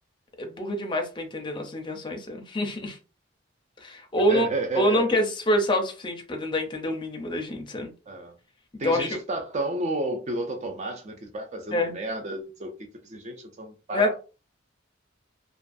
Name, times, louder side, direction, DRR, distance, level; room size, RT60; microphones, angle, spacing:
voice 1, 0.4-3.0 3.8-4.5 4.7-7.9 8.8-9.2 11.7-11.9 13.9-14.1, left 1 dB, 25° left, 0.5 m, -26 dB
voice 2, 4.3-5.2 8.1-8.3 8.8-12.7 13.0-14.1, right 2 dB, 40° right, 0.4 m, -31 dB
2.4 x 2.3 x 2.5 m
head